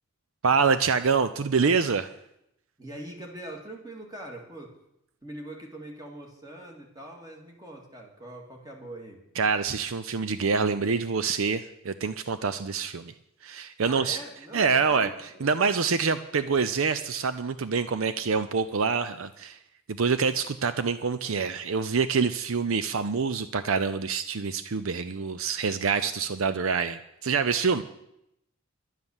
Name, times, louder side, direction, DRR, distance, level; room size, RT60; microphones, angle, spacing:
voice 1, 0.4-2.1 9.4-13.1 13.4-14.2 14.5-15.1 15.4-19.6 19.9-27.8, right 5 dB, 70° right, 12 dB, 0.6 m, -26 dB
voice 2, 2.8-4.7 5.2-9.2 13.8-15.5, right 1 dB, 20° right, 1 dB, 2.2 m, -42 dB
11.0 x 9.8 x 7.2 m, 0.81 s
head